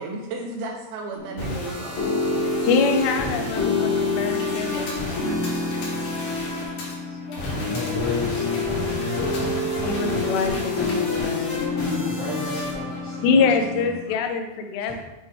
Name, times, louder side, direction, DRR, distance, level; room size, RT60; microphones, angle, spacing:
voice 1, 0.0-2.1 7.4-7.5 11.2-11.3, right 2 dB, 80° right, 1 dB, 2.2 m, -34 dB
sound 1, 1.2-14.0, left 3 dB, 45° left, 1.2 m, -27 dB
voice 2, 2.6-4.9 9.0-9.1 9.8-11.7 13.2-15.0, left 5 dB, 90° left, 5 dB, 2.9 m, -24 dB
Computer keyboard, 3.6-12.0, left 2 dB, 60° left, 2.5 m, -42 dB
voice 3, 7.7-9.3 11.8-13.4 13.7-13.9, left 2 dB, 60° right, -10 dB, 1.1 m, -32 dB
8.0 x 3.1 x 4.5 m, 1.1 s
omnidirectional pair, 4.8 m